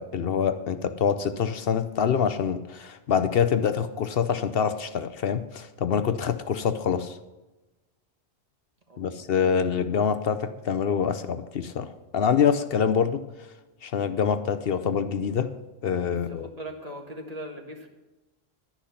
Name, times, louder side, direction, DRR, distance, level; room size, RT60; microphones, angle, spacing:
voice 1, 0.0-7.2 9.0-13.2 13.8-15.5 15.8-16.5, left 7 dB, 65° left, 11 dB, 0.9 m, -25 dB
voice 2, 8.9-9.2 16.0-17.9, right 1 dB, 35° right, 3 dB, 1.6 m, -40 dB
11.5 x 10.0 x 5.8 m, 1.1 s
omnidirectional pair, 1.1 m